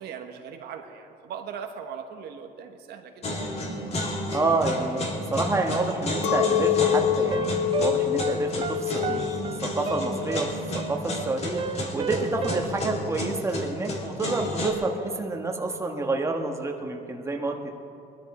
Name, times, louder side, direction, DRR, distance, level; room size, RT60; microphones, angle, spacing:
voice 1, 0.0-3.5, right 7 dB, 75° right, 5 dB, 1.2 m, -39 dB
sound 1, 3.2-14.7, left 1 dB, 40° left, 2.5 m, -32 dB
voice 2, 4.3-9.2 9.6-10.5 10.9-17.7, right 3 dB, 15° right, 2 dB, 1.4 m, -28 dB
Chink clink, 6.2-11.7, left 11 dB, 90° left, 0.5 m, -27 dB
sound 2, 6.4-12.6, right 7 dB, 35° right, 0.6 m, -34 dB
21.0 x 12.5 x 4.3 m, 2.7 s
cardioid pair, 110°, 17 cm